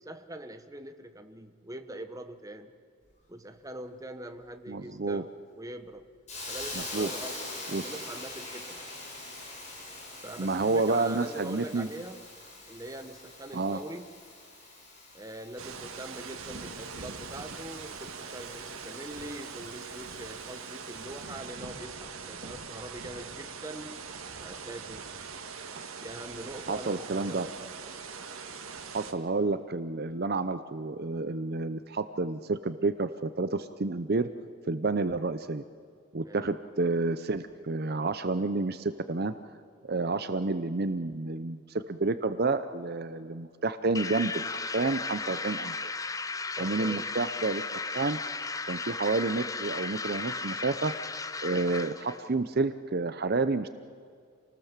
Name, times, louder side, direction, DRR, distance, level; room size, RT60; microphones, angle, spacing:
voice 1, 0.0-2.7 3.3-5.3 5.6-6.1 6.5-8.8 10.2-12.2 12.7-14.2 15.1-24.0 24.4-25.2 26.0-27.8 36.2-36.5 46.6-47.1, right 1 dB, 15° right, 7 dB, 1.1 m, -43 dB
voice 2, 4.7-5.2 6.9-7.1 7.7-7.9 10.4-11.9 13.5-13.8 25.7-25.8 26.7-27.5 28.9-34.3 34.7-35.6 36.1-39.3 39.8-45.9 46.6-48.2 48.7-50.9 51.4-53.7, right 3 dB, 50° right, 11 dB, 0.7 m, -30 dB
Hiss, 6.3-21.1, left 2 dB, 35° left, 6.8 m, -44 dB
sound 1, 15.6-29.1, right 5 dB, 80° right, 1.9 m, -42 dB
sound 2, 43.9-52.2, left 4 dB, 15° left, 0.6 m, -35 dB
28.0 x 19.5 x 7.4 m, 2.2 s
head